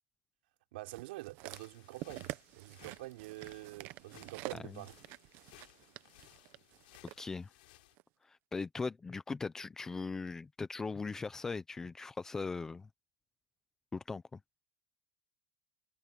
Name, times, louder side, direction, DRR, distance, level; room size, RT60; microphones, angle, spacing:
voice 1, 0.7-4.9, right 19 dB, 70° right, 4.2 m, -46 dB
sound 1, 0.9-7.2 8.0-8.1, right 19 dB, 40° right, 0.8 m, -48 dB
sound 2, 1.5-7.9, left 20 dB, 70° left, 3.4 m, -61 dB
voice 2, 7.2-7.5 8.3-12.9 13.9-14.4, left 4 dB, 10° left, 0.6 m, -39 dB
supercardioid pair, 175°, 5 cm